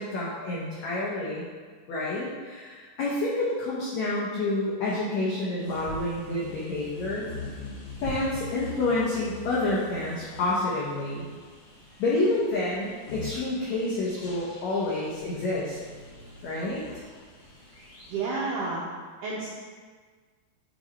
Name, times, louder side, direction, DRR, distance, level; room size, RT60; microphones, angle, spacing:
voice 1, 0.0-1.5 1.9-7.3 8.0-11.3 12.0-15.8 16.4-16.8, left 2 dB, 85° left, -6 dB, 1.6 m, -28 dB
sound 1, 5.6-18.2, left 3 dB, 60° left, 1.2 m, -43 dB
voice 2, 18.1-18.8 19.2-19.5, right 3 dB, 80° right, -5 dB, 1.8 m, -30 dB
8.4 x 2.9 x 4.3 m, 1.5 s
omnidirectional pair, 4.5 m